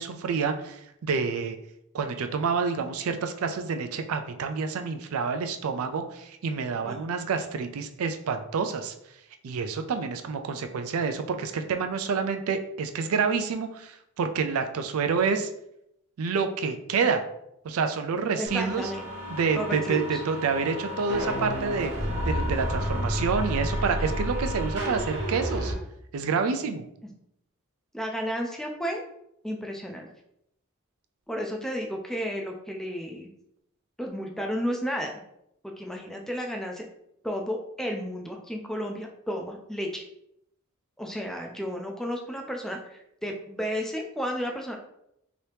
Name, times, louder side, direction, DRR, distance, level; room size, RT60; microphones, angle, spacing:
voice 1, 0.0-1.6 1.9-8.9 9.4-15.5 16.2-17.2 17.6-18.9 19.3-21.9 22.3-25.7 26.1-26.8, right 5 dB, 75° right, 7 dB, 0.4 m, -28 dB
voice 2, 18.4-19.1 19.5-20.2 27.9-29.0 29.4-30.1 31.3-33.3 34.0-35.2 35.6-36.8 37.2-40.0 41.0-44.8, equal, ahead, 1 dB, 0.3 m, -32 dB
sound 1, 18.5-25.7, equal, 55° right, 0.9 m, -31 dB
2.9 x 2.7 x 3.3 m, 0.77 s
head